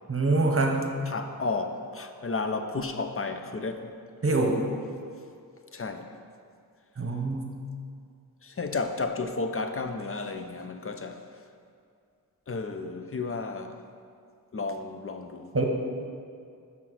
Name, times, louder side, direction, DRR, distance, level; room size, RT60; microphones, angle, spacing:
voice 1, 0.1-0.9 4.2-4.6 7.0-7.5 15.5-15.6, right 3 dB, 35° right, 2 dB, 1.0 m, -24 dB
voice 2, 1.0-3.9 5.7-6.2 8.4-11.2 12.5-13.8 14.5-15.5, left 3 dB, 40° left, 7 dB, 0.6 m, -32 dB
5.9 x 5.8 x 6.2 m, 2.3 s
wide cardioid pair, 75°, 37 cm